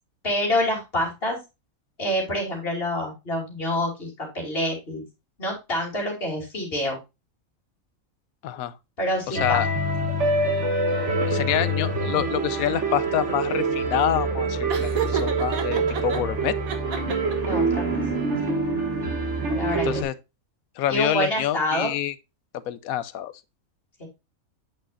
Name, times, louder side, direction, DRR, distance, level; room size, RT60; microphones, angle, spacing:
voice 1, 0.2-1.4 2.0-5.0 5.4-7.0 9.0-9.6 15.7-15.9 17.5-18.0 18.5-18.6 19.5-20.0 20.9-21.9 24.0-24.1, left 1 dB, 40° left, 3.2 m, -27 dB
voice 2, 8.4-8.7 9.3-9.7 11.3-16.6 19.8-20.1 20.8-22.1 22.7-23.3, left 11 dB, 80° left, 1.1 m, -27 dB
sound 1, 9.4-20.0, right 2 dB, 55° right, 2.1 m, -25 dB
Laughter, 14.7-16.2 16.7-17.5, right 6 dB, 75° right, 1.6 m, -30 dB
8.4 x 6.2 x 2.5 m
omnidirectional pair, 1.5 m